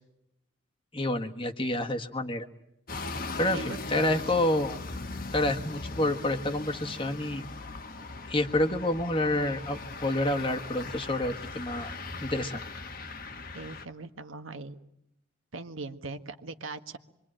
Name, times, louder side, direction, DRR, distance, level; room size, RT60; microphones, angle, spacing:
voice 1, 0.9-2.5 3.4-4.8 5.3-7.4 8.3-11.9 12.2-12.6, left 1 dB, 25° left, 4 dB, 1.6 m, -28 dB
sound 1, 2.9-13.9, left 3 dB, 45° left, 1.4 m, -39 dB
voice 2, 13.5-14.7 15.5-17.0, right 3 dB, 80° right, 7 dB, 1.6 m, -40 dB
26.0 x 23.0 x 9.0 m, 0.81 s
head